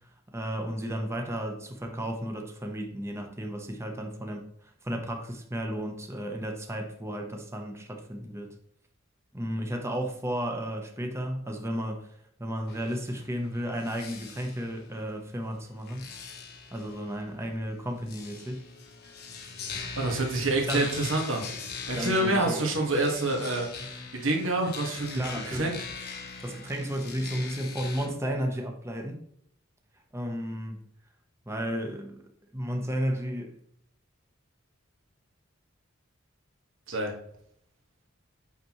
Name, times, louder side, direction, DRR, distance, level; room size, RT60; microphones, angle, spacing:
voice 1, 0.3-4.4 4.8-8.5 9.3-12.1 12.4-16.1 16.7-18.7 20.7-20.9 21.9-22.7 25.1-25.8 26.4-29.2 30.1-30.8 31.5-32.2 32.5-33.6, equal, 15° right, 3 dB, 0.9 m, -33 dB
sound 1, 12.7-28.1, left 5 dB, 50° left, 1.1 m, -42 dB
voice 2, 20.0-21.4 21.9-23.9 24.2-25.2 25.5-25.7 36.9-37.1, right 2 dB, 70° right, 1 dB, 1.7 m, -27 dB
8.2 x 5.9 x 3.1 m, 0.67 s
head